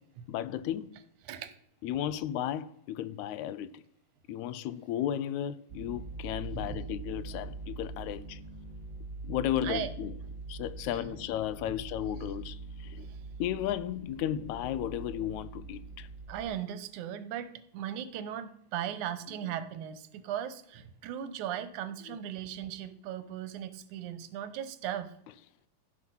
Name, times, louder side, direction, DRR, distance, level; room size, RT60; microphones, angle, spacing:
voice 1, 0.3-1.0 1.8-3.8 4.3-8.4 9.2-10.1 10.5-13.1 13.4-16.1 22.1-22.2, left 11 dB, 80° left, 1.9 m, -34 dB
sound 1, 5.7-16.5, right 3 dB, 45° right, 1.6 m, -43 dB
voice 2, 6.5-6.8 9.6-9.9 10.9-11.3 11.6-11.8 13.0-13.2 16.3-25.1, right 10 dB, 85° right, 2.3 m, -38 dB
15.0 x 5.9 x 5.4 m
omnidirectional pair, 3.4 m